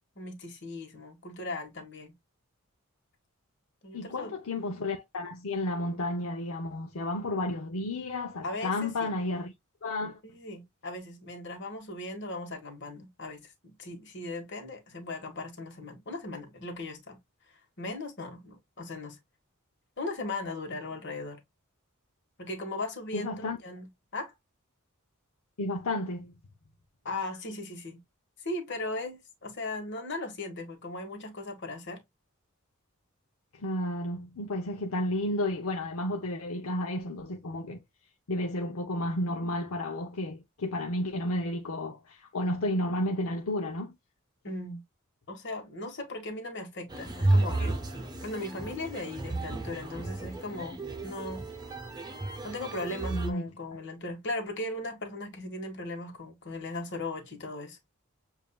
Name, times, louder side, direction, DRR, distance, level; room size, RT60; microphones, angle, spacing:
voice 1, 0.1-2.1 3.8-4.3 8.4-9.1 10.2-17.2 17.5-19.2 20.0-21.4 22.4-24.3 27.0-28.0 28.4-32.0 44.4-44.8 45.3-47.8 48.2-51.4 52.4-57.8, left 2 dB, 55° left, 1.5 m, -38 dB
voice 2, 3.9-9.5 9.8-10.2 23.1-23.6 25.6-26.3 33.5-37.8 38.3-43.9 53.1-53.5, left 1 dB, 75° left, 0.7 m, -32 dB
sound 1, 46.9-53.3, right 2 dB, 20° right, 0.9 m, -32 dB
7.3 x 2.7 x 2.3 m
head